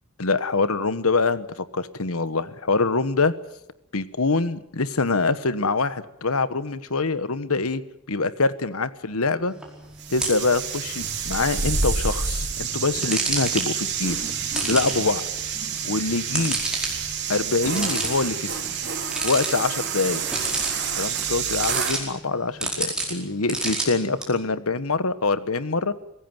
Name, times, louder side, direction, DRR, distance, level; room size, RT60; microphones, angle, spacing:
voice 1, 0.2-1.5 1.7-3.3 3.9-7.8 8.1-9.5 10.1-14.2 14.7-15.2 15.8-16.6 17.3-18.6 19.2-20.2 21.0-25.9, left 3 dB, 80° left, 14 dB, 1.2 m, -24 dB
sound 1, 9.5-24.2, right 2 dB, 5° right, 4.8 m, -33 dB
sound 2, 10.0-22.0, right 6 dB, 50° right, 3.9 m, -28 dB
24.5 x 16.5 x 9.5 m, 0.85 s
head